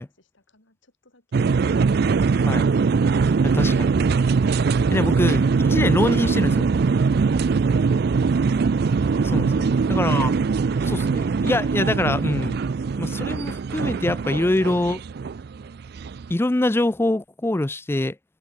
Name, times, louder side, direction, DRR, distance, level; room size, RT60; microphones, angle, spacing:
voice 1, 0.0-1.5, left 2 dB, 70° left, 6.0 m, -62 dB
sound 1, 1.3-16.3, right 5 dB, 50° right, 0.4 m, -21 dB
voice 2, 3.4-3.9 4.9-6.7 9.2-10.3 10.8-12.6 13.0-15.0 16.3-18.2, left 1 dB, 10° left, 0.4 m, -24 dB
head